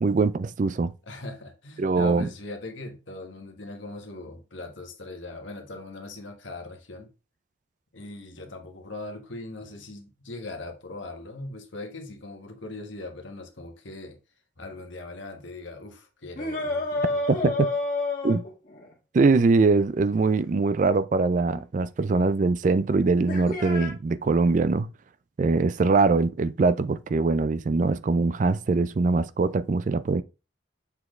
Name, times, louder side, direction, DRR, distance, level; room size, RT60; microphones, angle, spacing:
voice 1, 0.0-0.9 1.8-2.3 17.4-17.5 18.2-18.4 19.1-24.9 25.4-30.2, right 3 dB, 40° right, 0.3 m, -22 dB
voice 2, 1.1-7.1 7.9-14.2 14.6-17.5, left 2 dB, 80° left, 1.4 m, -40 dB
sound 1, 16.4-18.9 21.5-21.6 23.3-23.9, left 2 dB, 45° left, 1.9 m, -29 dB
7.1 x 4.2 x 3.1 m
head